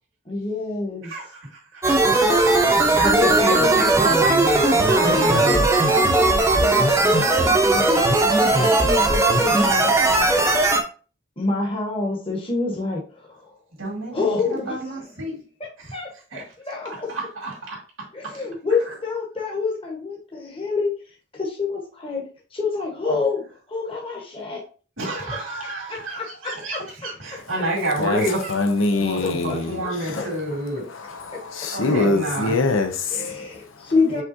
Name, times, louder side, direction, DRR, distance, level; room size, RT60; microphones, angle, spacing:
voice 1, 0.2-1.1 2.9-3.9 5.1-10.5 11.4-13.5 14.1-15.0 15.9-17.1 18.1-20.9 21.3-22.2 22.5-23.4 23.7-24.6 25.6-26.0 26.4-26.8 29.2-29.9 30.2-30.3 33.0-34.2, left 3 dB, 25° left, 1.2 m, -27 dB
voice 2, 1.0-2.2 2.9-5.7 13.8-15.4 15.8-15.9 16.3-16.5 16.9-18.4 18.8-19.0 25.0-30.9 31.7-32.6 34.1-34.2, right 1 dB, 80° right, 2.0 m, -29 dB
sound 1, 1.8-10.8, right 2 dB, 15° right, 0.7 m, -18 dB
voice 3, 28.5-29.8 30.1-30.2 31.0-33.2, left 3 dB, 80° left, 0.8 m, -23 dB
5.4 x 3.7 x 2.7 m
head